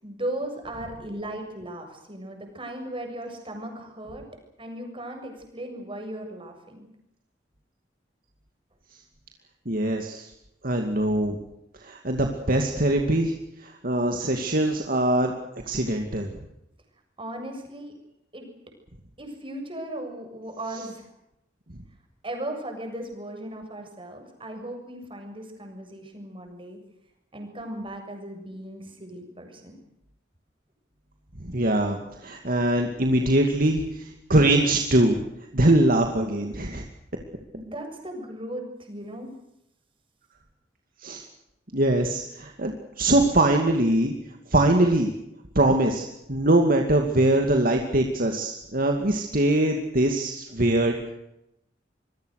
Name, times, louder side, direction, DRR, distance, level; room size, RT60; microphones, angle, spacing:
voice 1, 0.0-4.2 4.6-6.9 17.2-17.9 18.3-18.5 19.2-21.1 22.2-26.8 27.3-29.8 37.5-39.3, right 1 dB, 30° right, 3 dB, 7.3 m, -37 dB
voice 2, 9.7-10.3 10.6-11.4 11.8-13.3 13.6-15.3 15.6-16.3 31.4-35.2 35.5-36.8 41.0-41.2 41.7-44.1 44.5-45.1 45.5-51.0, right 1 dB, 55° right, 3 dB, 2.5 m, -22 dB
27.0 x 23.0 x 6.7 m, 0.84 s
head